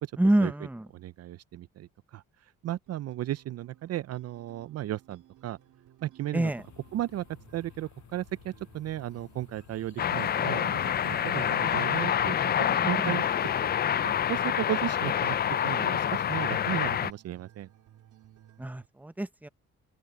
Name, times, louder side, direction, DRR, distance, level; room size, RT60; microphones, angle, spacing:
voice 1, 0.2-0.8 6.3-6.6 13.0-13.2 18.6-19.5, right 1 dB, 5° right, 0.9 m, -27 dB
voice 2, 0.9-2.2 2.6-5.6 6.0-6.5 6.9-7.2 7.5-13.2 13.6-13.7 14.0-15.4 15.6-17.7, right 13 dB, 55° right, 0.5 m, -35 dB
sound 1, 2.9-18.9, right 12 dB, 75° right, 3.0 m, -58 dB
sound 2, 6.6-16.3, left 10 dB, 70° left, 6.6 m, -54 dB
sound 3, 10.0-17.1, left 9 dB, 35° left, 0.4 m, -27 dB
open air
cardioid pair, 90°, 30 cm